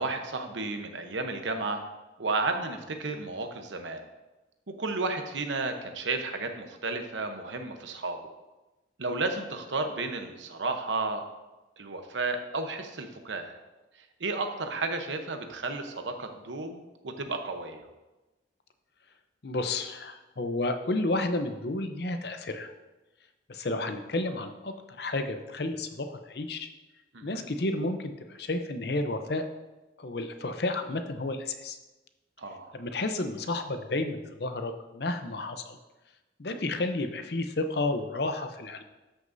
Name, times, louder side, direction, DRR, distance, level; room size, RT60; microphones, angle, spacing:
voice 1, 0.0-1.8 2.2-4.1 4.8-8.2 9.0-11.2 11.8-13.6 14.2-17.8 27.1-27.4 32.4-32.7, right 3 dB, 85° right, 6 dB, 0.9 m, -32 dB
voice 2, 19.4-22.7 23.5-26.7 27.2-29.5 30.0-31.8 32.7-35.8 36.4-38.8, left 2 dB, 60° left, 7 dB, 0.7 m, -31 dB
13.0 x 6.2 x 2.7 m, 1.1 s
head